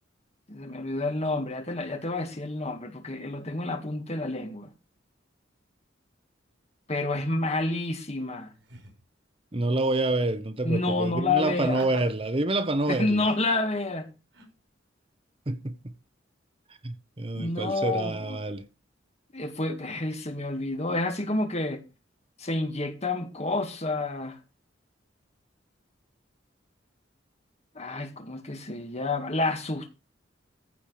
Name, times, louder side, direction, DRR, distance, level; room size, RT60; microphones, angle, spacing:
voice 1, 0.5-4.7 6.9-8.5 10.6-11.9 12.9-14.1 17.3-18.5 19.3-21.8 22.4-24.4 27.8-29.9, left 2 dB, 35° left, 2.0 m, -29 dB
Laughter, 8.6-9.0 11.4-12.1 12.8-13.6 14.3-14.5, right 2 dB, 70° right, 4.6 m, -45 dB
voice 2, 9.5-13.3 15.5-15.9 16.8-18.7, right 2 dB, 30° right, 0.9 m, -27 dB
14.5 x 5.0 x 6.3 m
head